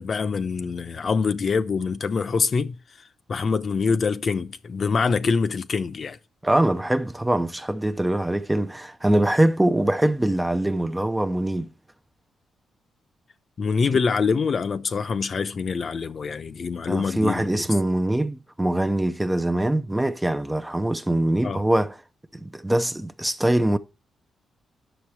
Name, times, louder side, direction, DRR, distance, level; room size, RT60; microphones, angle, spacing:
voice 1, 0.0-2.8 3.3-6.2 13.6-17.6 21.4-21.6, left 5 dB, 50° left, 0.8 m, -25 dB
voice 2, 6.4-11.7 16.9-22.0 22.3-23.8, right 1 dB, 10° right, 0.6 m, -23 dB
10.0 x 6.6 x 4.7 m
cardioid pair, 90°, 0 cm